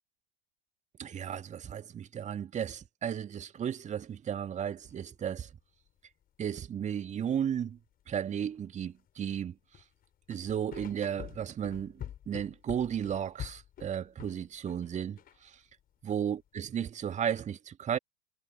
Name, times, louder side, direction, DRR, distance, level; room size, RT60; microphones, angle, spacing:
voice 1, 1.0-5.5 6.4-7.8 8.1-9.5 10.3-12.0 12.3-15.5 16.1-18.0, right 8 dB, 20° right, 2.1 m, -34 dB
sound 1, 4.8-5.0 5.3-5.4 5.9-6.1 6.8-6.9 7.7-9.3 9.7-14.9 15.2-15.8 16.2-16.5, left 10 dB, 30° left, 4.8 m, -46 dB
figure-of-eight pair, 85°, 31 cm